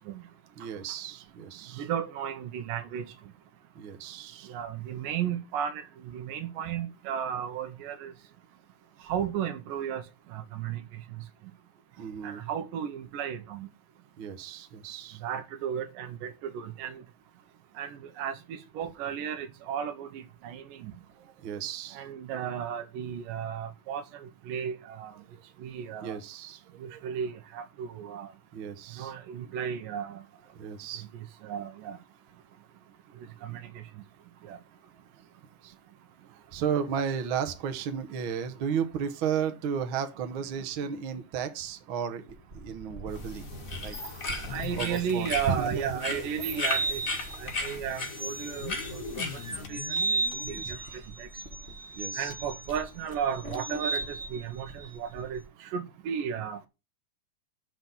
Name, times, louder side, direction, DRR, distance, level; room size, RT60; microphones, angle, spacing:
voice 1, 0.5-1.8 3.7-4.6 11.9-12.4 14.2-15.2 21.2-22.0 26.0-26.6 26.9-27.0 28.5-29.1 30.5-31.1 35.6-35.7 36.5-43.4 43.8-44.0 44.8-46.0 50.4-51.1 51.9-52.3, right 7 dB, 60° right, 1.3 m, -34 dB
voice 2, 1.8-3.1 4.5-5.8 6.1-8.1 9.1-10.0 10.3-10.8 12.2-13.7 15.2-17.0 17.8-20.9 21.9-25.1 25.6-26.2 26.8-28.3 29.0-30.2 31.4-32.0 33.4-33.8 34.5-34.6 44.5-47.0 47.4-49.8 50.4-50.8 51.2-51.3 52.2-55.4 55.7-56.6, right 8 dB, 80° right, 2.6 m, -34 dB
sound 1, 42.3-55.4, right 3 dB, 25° right, 1.4 m, -36 dB
sound 2, 43.1-49.7, left 3 dB, 30° left, 1.8 m, -36 dB
sound 3, 44.4-45.7 46.0-46.1 46.3-46.4 47.4-47.5 48.4-50.7 51.2-51.3 51.7-51.8 52.2-53.2 53.5-53.6 53.9-54.1 54.8-54.9, left 10 dB, 70° left, 2.6 m, -44 dB
6.2 x 5.9 x 7.0 m
omnidirectional pair, 3.9 m